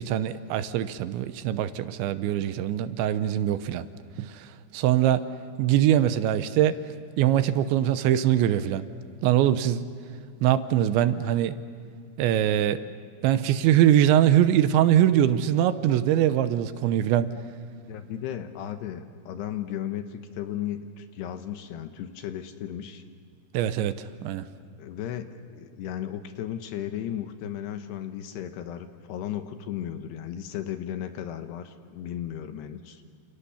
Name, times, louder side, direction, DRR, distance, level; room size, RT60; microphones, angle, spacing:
voice 1, 0.0-3.9 4.2-5.2 5.6-6.8 7.2-8.9 9.2-9.9 10.4-11.6 12.2-12.9 13.2-17.4 23.5-24.5, right 11 dB, 80° right, 12 dB, 3.1 m, -22 dB
voice 2, 17.9-23.0 24.8-33.0, left 10 dB, 75° left, 8 dB, 2.9 m, -35 dB
29.0 x 28.0 x 7.0 m, 2.2 s
omnidirectional pair, 5.4 m